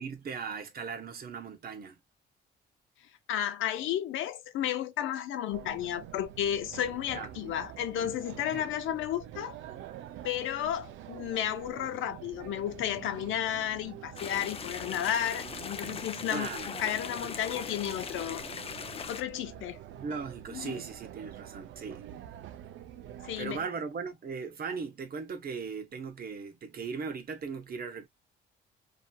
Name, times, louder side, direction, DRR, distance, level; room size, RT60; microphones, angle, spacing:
voice 1, 0.0-2.0 7.1-7.3 8.5-8.7 16.3-16.7 19.9-22.0 23.2-28.1, right 5 dB, 50° right, 0.9 m, -38 dB
voice 2, 3.3-9.6 10.2-18.4 19.1-19.8 20.5-20.8 23.2-23.6, left 10 dB, 80° left, 0.6 m, -33 dB
sound 1, 5.5-23.6, right 11 dB, 75° right, 0.5 m, -47 dB
sound 2, 14.2-19.2, left 6 dB, 30° left, 0.4 m, -40 dB
2.8 x 2.7 x 2.2 m
cardioid pair, 90°, 20 cm